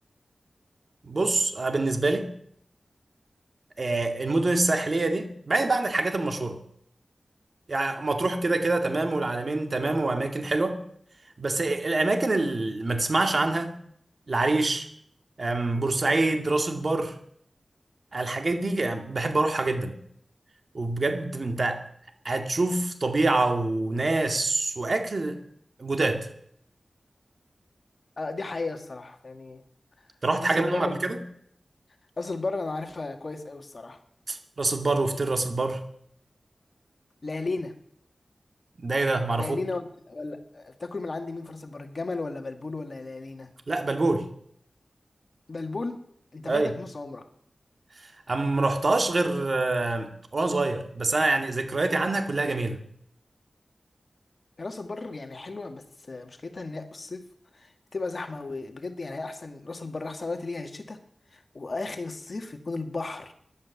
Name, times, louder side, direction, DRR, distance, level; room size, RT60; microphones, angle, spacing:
voice 1, 1.0-2.3 3.8-6.6 7.7-10.8 11.4-13.8 14.3-14.9 15.4-17.1 18.1-20.0 20.7-21.8 22.2-25.4 25.8-26.3 30.2-31.2 34.3-35.8 38.8-39.6 43.7-44.3 46.4-46.7 48.3-52.8, right 2 dB, 60° right, 6 dB, 2.2 m, -25 dB
voice 2, 28.2-29.6 30.4-30.9 32.2-34.0 37.2-37.7 39.4-43.5 45.5-46.0 46.3-47.3 54.6-57.2 57.5-61.0 61.3-63.3, left 3 dB, 55° left, 6 dB, 1.9 m, -35 dB
15.0 x 11.5 x 7.2 m, 0.66 s
wide cardioid pair, 55°, 0 cm